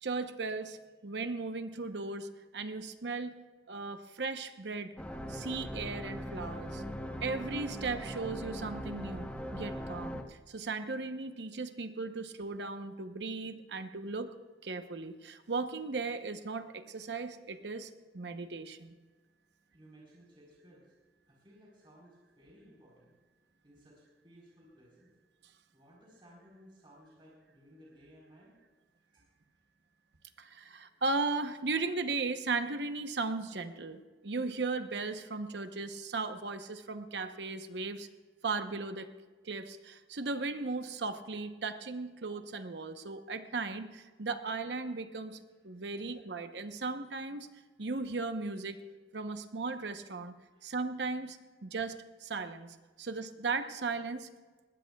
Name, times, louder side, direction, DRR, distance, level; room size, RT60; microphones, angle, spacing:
voice 1, 0.0-3.3 3.7-4.9 5.3-6.8 7.2-14.3 14.6-18.9 30.4-38.1 38.4-39.1 39.4-45.4 45.6-47.5 47.8-48.8 49.1-50.3 50.6-54.3, right 3 dB, 70° right, 9 dB, 0.9 m, -37 dB
sound 1, 5.0-10.2, equal, 5° left, 1.0 m, -40 dB
voice 2, 19.7-20.9 21.3-23.2 23.6-25.1 25.7-28.5 28.9-29.3 46.0-46.1 50.5-50.7, equal, 30° right, -4 dB, 4.0 m, -59 dB
20.5 x 19.0 x 2.3 m, 1.4 s
head